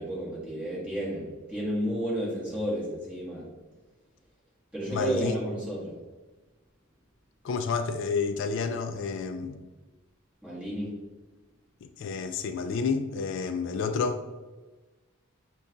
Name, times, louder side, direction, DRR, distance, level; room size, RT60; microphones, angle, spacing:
voice 1, 0.0-3.5 4.7-6.0 10.4-10.9, equal, 5° right, -8 dB, 1.4 m, -32 dB
voice 2, 4.9-5.3 7.4-9.6 11.8-14.2, left 5 dB, 60° left, 7 dB, 0.3 m, -30 dB
5.3 x 2.3 x 3.8 m, 1.2 s
head